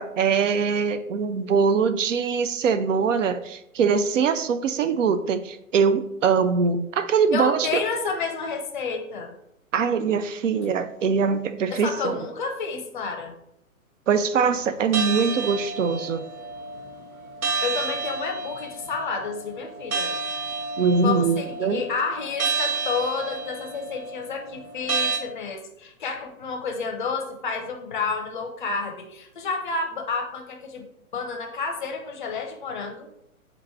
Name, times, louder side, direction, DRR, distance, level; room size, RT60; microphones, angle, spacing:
voice 1, 0.0-7.8 9.7-12.2 14.1-16.3 20.8-21.8, right 5 dB, 60° right, 10 dB, 0.5 m, -23 dB
voice 2, 7.3-9.3 11.7-13.3 17.6-20.1 21.0-30.9 31.1-33.1, left 4 dB, 35° left, 4 dB, 0.6 m, -30 dB
sound 1, 14.9-25.2, right 4 dB, 75° right, 0.9 m, -31 dB
4.5 x 2.6 x 4.2 m, 0.80 s
figure-of-eight pair, 125°, 43 cm